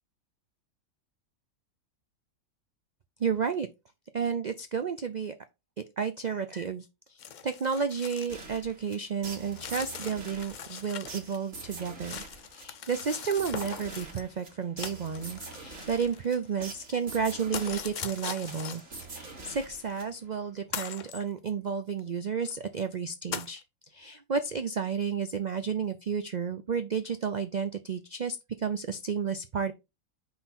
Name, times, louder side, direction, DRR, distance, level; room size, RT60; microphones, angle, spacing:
voice 1, 3.2-3.7 4.1-5.3 5.8-12.2 12.5-18.8 19.1-23.6 23.9-29.7, right 6 dB, 70° right, 0.4 m, -32 dB
sound 1, 7.2-8.4 8.7-8.8 9.5-11.4 11.6-14.2 14.8-16.5 17.5-19.1 19.9-20.0 20.7-21.2 22.0-22.1 22.4-22.6 23.3-23.5, left 8 dB, 80° left, 0.4 m, -40 dB
sound 2, 8.3-20.4, right 3 dB, 55° right, 2.1 m, -45 dB
5.7 x 4.2 x 4.2 m
omnidirectional pair, 1.5 m